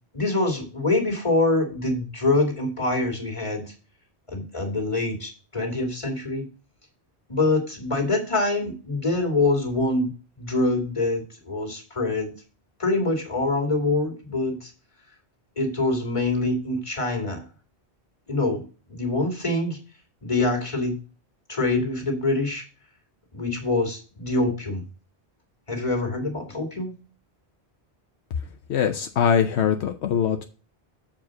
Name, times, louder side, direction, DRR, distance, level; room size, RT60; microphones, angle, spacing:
voice 1, 0.1-3.7 4.3-6.5 7.3-10.1 10.4-12.3 12.8-14.7 15.6-17.4 18.3-19.8 20.2-21.0 21.5-22.6 23.3-24.8 25.7-26.9, left 2 dB, 30° left, 2 dB, 2.3 m, -25 dB
voice 2, 28.7-30.4, left 8 dB, 80° left, 7 dB, 1.0 m, -22 dB
7.3 x 4.8 x 6.2 m, 0.36 s
omnidirectional pair, 1.1 m